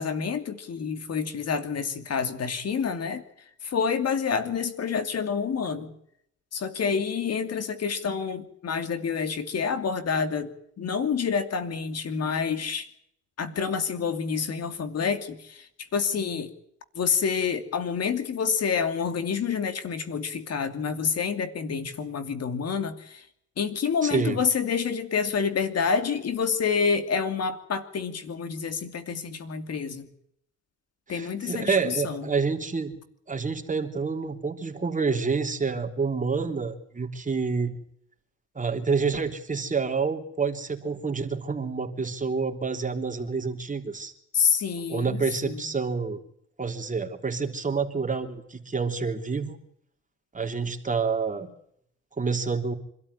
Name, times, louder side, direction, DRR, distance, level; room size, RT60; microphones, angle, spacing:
voice 1, 0.0-3.2 3.6-5.9 6.5-12.9 13.4-15.7 15.9-16.5 16.9-23.2 23.6-30.1 31.1-32.3 44.3-45.6, left 6 dB, 55° left, 9 dB, 2.7 m, -28 dB
voice 2, 24.0-24.4 31.1-32.9 33.3-37.7 38.5-44.1 44.9-46.2 46.6-49.6 50.3-51.5 52.2-52.7, right 5 dB, 25° right, 4 dB, 3.4 m, -28 dB
26.0 x 13.0 x 9.7 m, 0.71 s
cardioid pair, 90°, 30 cm